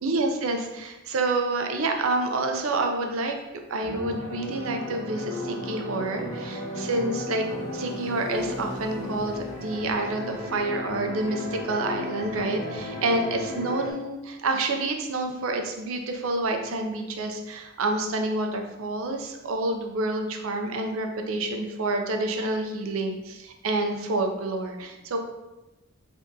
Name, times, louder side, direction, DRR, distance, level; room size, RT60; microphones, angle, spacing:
voice 1, 0.0-3.4 3.7-7.5 7.7-25.2, right 2 dB, 80° right, 4 dB, 0.5 m, -28 dB
sound 1, 3.8-13.9, left 1 dB, 35° left, 0.8 m, -34 dB
3.5 x 2.7 x 3.6 m, 1.0 s
head